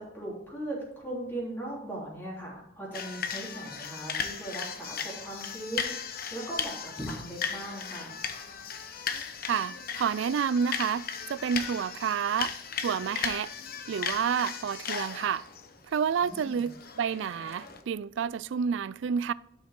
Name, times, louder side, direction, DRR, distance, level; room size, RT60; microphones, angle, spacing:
voice 1, 0.0-8.2 16.2-16.6, right 1 dB, 10° left, 3.4 m, -39 dB
sound 1, 2.9-17.8, left 7 dB, 50° left, 0.9 m, -37 dB
voice 2, 9.5-12.5 12.8-13.5 13.9-15.4 15.9-19.3, right 7 dB, 75° right, 0.3 m, -29 dB
11.5 x 6.2 x 3.7 m
head